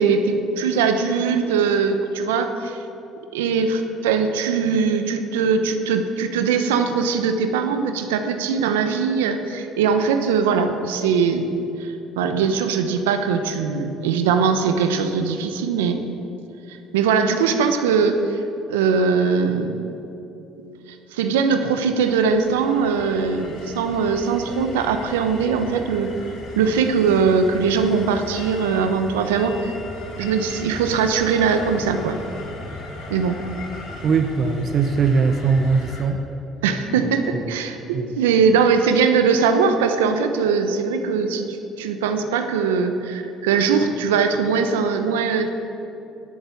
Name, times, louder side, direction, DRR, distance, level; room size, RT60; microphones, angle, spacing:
voice 1, 0.0-2.8 3.3-11.5 11.8-16.0 16.7-18.4 18.7-19.8 21.1-26.1 26.6-29.8 30.2-32.2 33.1-33.4 36.6-45.5, right 5 dB, 90° right, 7 dB, 0.9 m, -21 dB
sound 1, 22.0-36.0, left 2 dB, 80° left, 2.7 m, -37 dB
voice 2, 34.0-36.2 37.3-37.4 37.9-38.1, right 5 dB, 50° right, 7 dB, 0.8 m, -20 dB
11.0 x 8.2 x 8.3 m, 2.9 s
hypercardioid pair, 65°, 0 cm